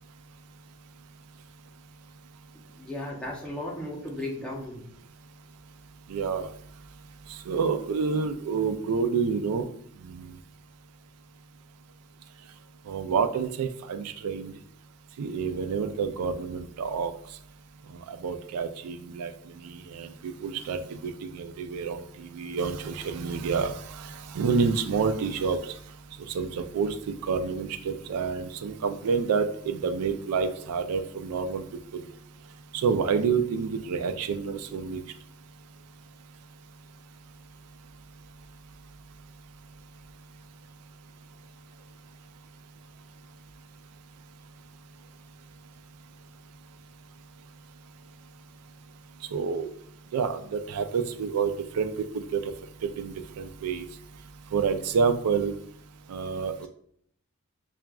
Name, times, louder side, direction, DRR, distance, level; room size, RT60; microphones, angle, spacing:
voice 1, 2.5-4.8, left 1 dB, 5° left, -4 dB, 0.7 m, -36 dB
voice 2, 6.1-6.5 7.5-9.7 10.1-10.3 12.9-14.5 15.2-17.1 18.1-19.3 19.9-22.0 22.3-24.1 24.3-25.6 26.3-26.5 26.7-31.6 32.7-35.0 49.3-49.7 50.1-52.4 53.0-53.8 54.5-55.5 56.1-56.7, right 5 dB, 90° right, 9 dB, 0.3 m, -28 dB
5.7 x 2.4 x 2.3 m, 0.65 s
head